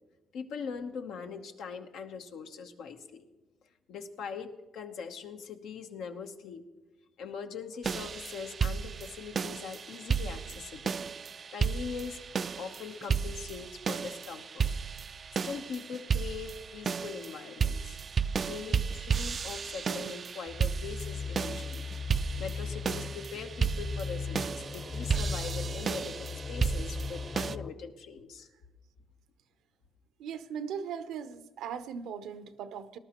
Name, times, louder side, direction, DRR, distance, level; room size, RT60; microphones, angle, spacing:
voice 1, 0.3-3.3 3.9-6.7 7.2-11.0 11.5-12.2 12.6-14.7 15.4-18.0 18.4-21.8 22.4-28.5, left 6 dB, 85° left, 5 dB, 1.0 m, -41 dB
sound 1, 7.8-27.5, right 6 dB, 45° right, 0.3 m, -33 dB
sound 2, 20.5-27.7, left 4 dB, 40° left, 1.0 m, -38 dB
voice 2, 30.2-33.0, right 7 dB, 85° right, 12 dB, 0.7 m, -39 dB
19.5 x 12.0 x 3.0 m, 1.2 s
cardioid pair, 90°, 0 cm